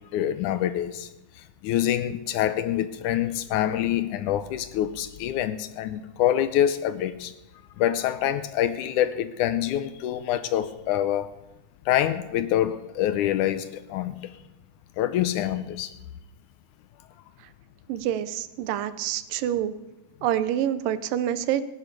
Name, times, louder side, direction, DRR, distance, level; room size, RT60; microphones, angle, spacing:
voice 1, 0.1-1.1 1.6-7.3 7.8-11.3 11.9-14.1 15.0-15.9, left 11 dB, 75° left, 12 dB, 2.0 m, -26 dB
voice 2, 17.9-19.7 20.2-21.6, right 11 dB, 85° right, 13 dB, 2.4 m, -27 dB
17.5 x 9.7 x 6.7 m, 0.96 s
omnidirectional pair, 3.8 m